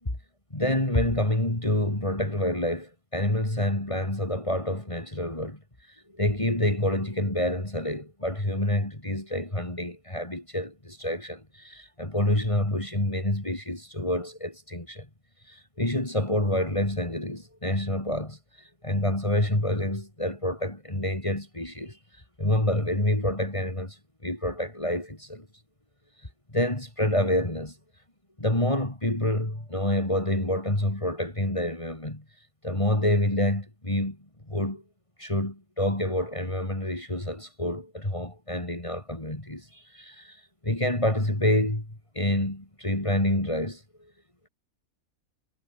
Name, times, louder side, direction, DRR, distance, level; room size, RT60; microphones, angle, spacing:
voice 1, 0.5-5.6 6.1-15.1 15.5-18.4 18.8-22.0 22.4-25.5 26.5-27.8 28.4-32.2 32.6-34.2 34.5-34.8 35.2-43.8, left 1 dB, 20° left, 3.6 m, -27 dB
omnidirectional pair, 1.5 m